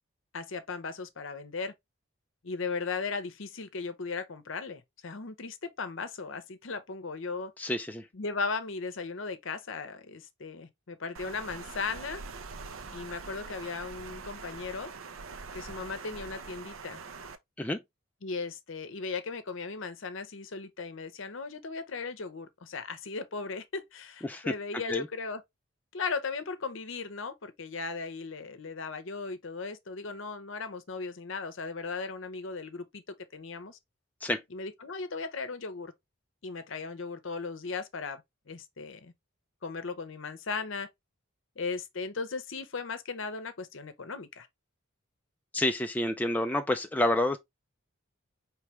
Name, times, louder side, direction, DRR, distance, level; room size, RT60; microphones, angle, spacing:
voice 1, 0.3-1.7 2.4-7.5 8.1-12.2 12.9-14.9 15.5-17.0 18.2-25.4 25.9-33.0 33.3-33.8 34.5-35.9 36.4-39.1 39.6-40.9 41.6-44.5, left 4 dB, 65° left, 0.7 m, -37 dB
voice 2, 7.6-8.1 17.6-17.8 24.2-24.5 24.9-25.1 34.2-34.4 45.5-47.4, left 1 dB, 10° left, 0.3 m, -28 dB
Water, 11.1-17.3, right 4 dB, 75° right, 0.6 m, -43 dB
4.8 x 3.3 x 3.1 m
head